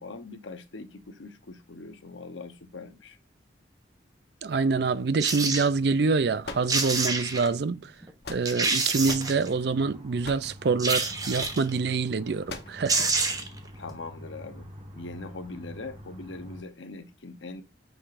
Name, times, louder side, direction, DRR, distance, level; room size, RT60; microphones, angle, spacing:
voice 1, 0.0-3.2 13.7-14.7 14.9-17.6, left 3 dB, 80° left, 0.9 m, -41 dB
voice 2, 4.4-7.9 8.3-13.1, right 4 dB, 60° right, 0.4 m, -26 dB
sound 1, 5.2-5.7 6.4-6.5 6.7-7.5 8.0-8.1 8.5-9.5 10.8-11.7 12.5-12.6 12.9-13.6 13.9-14.0, right 3 dB, 20° right, 0.8 m, -27 dB
sound 2, 6.4-7.2 7.9-8.7 9.1-9.4 10.2-10.6 11.4-11.6 12.5-12.8, left 3 dB, 60° left, 1.0 m, -40 dB
sound 3, 9.0-16.6, equal, 35° right, 1.5 m, -46 dB
8.8 x 4.9 x 2.6 m
head